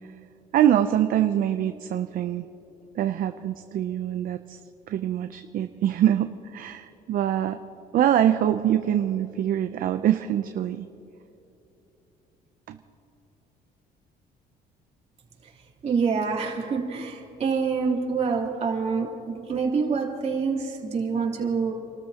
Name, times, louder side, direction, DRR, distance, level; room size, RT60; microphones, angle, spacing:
voice 1, 0.5-2.5 2.9-4.6 4.9-7.6 7.9-10.9 12.7-12.8, right 11 dB, 55° right, 8 dB, 0.6 m, -24 dB
voice 2, 15.8-21.7, right 5 dB, 40° right, -3 dB, 3.3 m, -26 dB
29.0 x 13.5 x 2.9 m, 2.9 s
cardioid pair, 110°, 17 cm